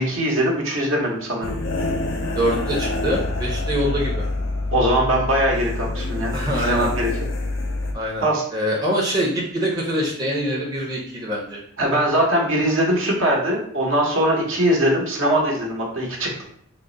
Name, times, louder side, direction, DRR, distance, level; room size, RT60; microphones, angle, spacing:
voice 1, 0.0-1.5 4.7-7.1 8.2-8.4 11.8-16.4, right 1 dB, 65° right, -2 dB, 1.0 m, -21 dB
sound 1, 1.4-7.9, left 2 dB, 60° left, 0.5 m, -26 dB
voice 2, 2.4-4.2 6.3-6.9 7.9-8.3 8.5-11.6, equal, 20° right, -4 dB, 0.6 m, -24 dB
3.7 x 2.0 x 3.8 m, 0.64 s
head